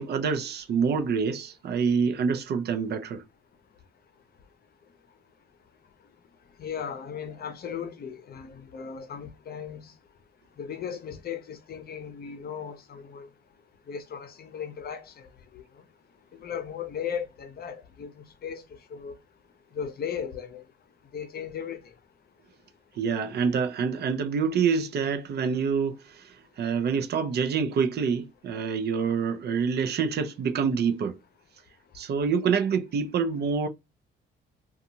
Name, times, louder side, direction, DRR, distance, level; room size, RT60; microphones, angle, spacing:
voice 1, 0.0-3.2 23.0-31.2 31.9-33.7, right 6 dB, 55° right, 0.5 m, -26 dB
voice 2, 6.6-9.9 10.6-13.3 13.9-15.1 15.5-15.6 16.3-19.2 19.7-20.6 21.1-21.8, left 7 dB, 50° left, 0.6 m, -36 dB
2.6 x 2.3 x 2.7 m
cardioid pair, 90°, 20 cm